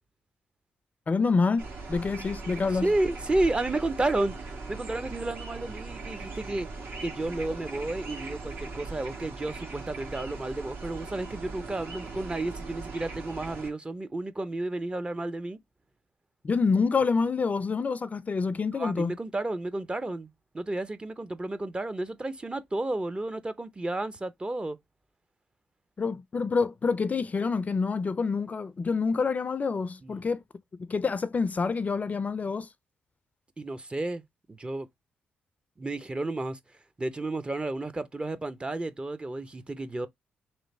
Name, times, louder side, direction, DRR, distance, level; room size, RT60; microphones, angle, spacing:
voice 1, 1.1-2.9 16.4-19.2 26.0-30.4 30.8-32.7, left 4 dB, 35° left, 0.4 m, -27 dB
sound 1, 1.6-13.7, right 3 dB, 60° right, 1.2 m, -39 dB
voice 2, 2.8-6.7 7.0-15.6 18.7-24.8 30.0-30.2 33.6-34.9 35.8-36.6 37.0-40.1, right 2 dB, 25° right, 0.6 m, -32 dB
3.1 x 2.5 x 4.2 m
hypercardioid pair, 45°, 4 cm